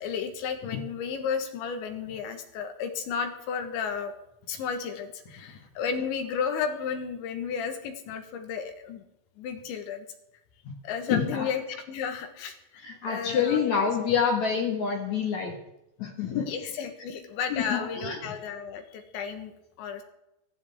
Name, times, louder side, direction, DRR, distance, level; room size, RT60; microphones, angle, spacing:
voice 1, 0.0-4.1 4.5-9.0 9.4-10.1 10.8-12.8 13.1-13.9 16.5-20.0, left 6 dB, 80° left, 6 dB, 3.7 m, -33 dB
voice 2, 11.1-11.5 12.8-15.5 16.0-16.5 17.5-18.3, left 7 dB, 55° left, 1 dB, 2.4 m, -27 dB
18.5 x 15.0 x 3.6 m, 0.87 s
omnidirectional pair, 5.2 m